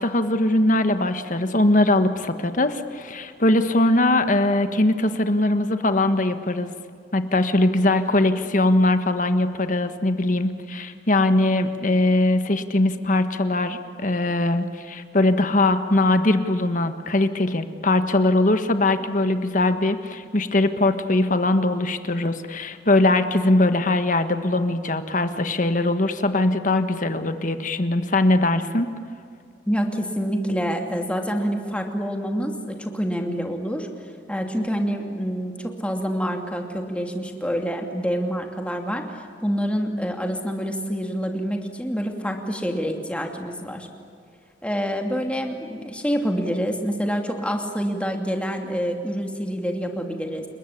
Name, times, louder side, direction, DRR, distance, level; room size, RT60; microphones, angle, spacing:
voice 1, 0.0-6.7 7.1-28.9, left 2 dB, 50° left, 8 dB, 1.5 m, -21 dB
voice 2, 29.7-33.9 34.3-39.1 39.4-43.9 44.6-50.5, equal, 5° left, 3 dB, 2.7 m, -27 dB
30.0 x 21.0 x 8.7 m, 2.2 s
head